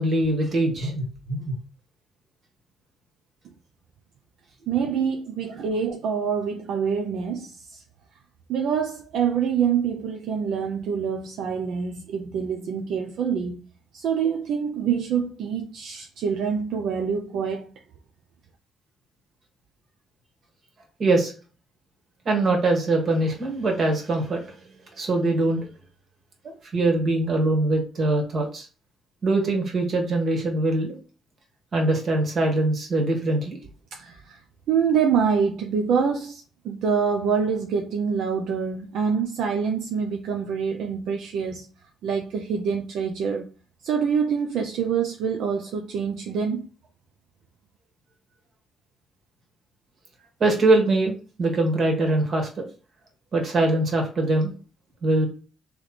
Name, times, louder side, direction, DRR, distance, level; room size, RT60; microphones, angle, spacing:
voice 1, 0.0-1.5 21.0-21.3 22.2-24.5 25.0-25.7 26.4-28.7 29.2-30.9 31.7-33.6 50.4-52.5 53.3-54.5 55.0-55.3, right 2 dB, 50° right, 1.6 m, -23 dB
voice 2, 4.7-7.8 8.5-13.6 13.9-17.7 33.9-34.4 34.7-41.7 42.0-43.4 43.8-46.6, right 6 dB, 80° right, 0.5 m, -26 dB
3.3 x 3.1 x 4.0 m
cardioid pair, 90°, 0 cm